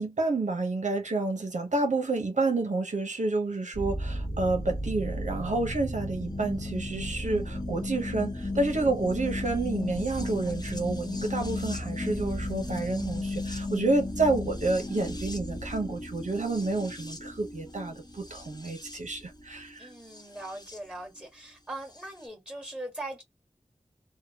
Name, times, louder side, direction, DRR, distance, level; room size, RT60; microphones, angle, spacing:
voice 1, 0.0-19.9, right 3 dB, 70° right, 0.9 m, -29 dB
sound 1, 3.7-20.8 21.9-22.0, left 1 dB, 30° left, 0.9 m, -35 dB
voice 2, 19.8-23.2, right 1 dB, 5° right, 1.5 m, -40 dB
2.7 x 2.2 x 2.8 m
wide cardioid pair, 55°, 13 cm